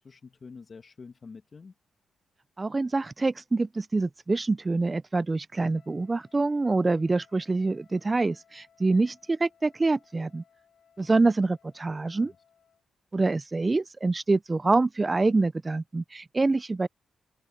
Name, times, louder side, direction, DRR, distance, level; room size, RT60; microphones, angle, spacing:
voice 1, 0.0-1.7 11.4-11.5 12.2-12.4, left 4 dB, 45° left, 2.0 m, -47 dB
voice 2, 2.6-10.4 11.0-12.3 13.1-16.9, right 3 dB, 30° right, 0.4 m, -26 dB
Trumpet, 5.5-12.8, left 7 dB, 65° left, 7.0 m, -64 dB
cardioid pair, 65°, 0 cm